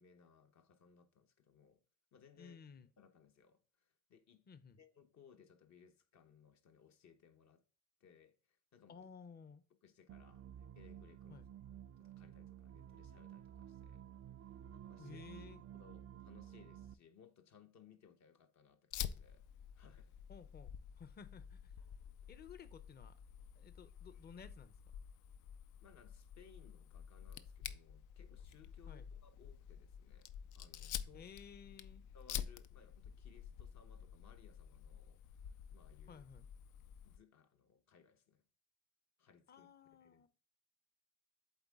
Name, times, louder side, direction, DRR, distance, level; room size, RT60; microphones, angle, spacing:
voice 1, 0.0-1.8 2.1-2.6 3.0-4.4 4.8-7.6 8.0-9.1 9.8-11.4 12.0-14.1 14.7-15.2 15.7-19.5 19.7-20.1 25.8-31.3 32.1-36.3 37.0-38.4 39.2-40.3, left 7 dB, 65° left, 1.1 m, -65 dB
voice 2, 2.4-2.9 4.5-4.8 8.9-9.6 11.3-11.5 15.0-15.6 20.3-21.7 22.3-23.2 23.6-24.7 28.9-29.1 31.1-32.0 36.1-36.5 39.5-40.3, left 6 dB, 35° left, 0.6 m, -56 dB
sound 1, 10.1-16.9, right 10 dB, 50° right, 0.4 m, -53 dB
Fire, 18.9-37.2, left 9 dB, 85° left, 0.5 m, -49 dB
8.1 x 3.7 x 3.6 m
cardioid pair, 90°, 30 cm